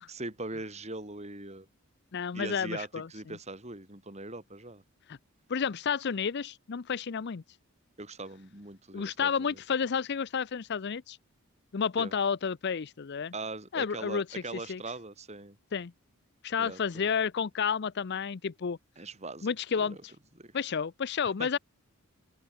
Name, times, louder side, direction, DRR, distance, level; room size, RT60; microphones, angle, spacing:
voice 1, 0.1-1.7 2.3-4.8 8.0-9.6 12.0-12.2 13.3-15.6 16.6-17.0 19.0-20.0 20.4-20.5 21.3-21.6, right 2 dB, 30° right, 3.6 m, -41 dB
voice 2, 2.1-3.4 5.1-5.2 5.5-7.4 8.9-11.2 11.7-13.3 13.7-14.8 15.7-15.9 16.4-18.8 19.4-20.0 20.5-21.6, left 6 dB, 50° left, 0.5 m, -31 dB
open air
head